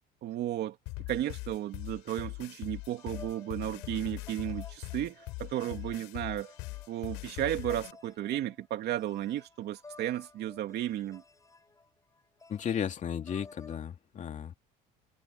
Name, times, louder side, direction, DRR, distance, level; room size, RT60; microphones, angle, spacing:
voice 1, 0.2-0.8 1.1-6.5 6.9-11.2, right 12 dB, 60° right, 2.8 m, -34 dB
sound 1, 0.9-7.9, left 25 dB, 85° left, 3.9 m, -41 dB
sound 2, 2.8-13.8, left 3 dB, 15° left, 6.7 m, -55 dB
voice 2, 12.5-14.5, left 8 dB, 40° left, 2.7 m, -34 dB
cardioid pair, 115°, 19 cm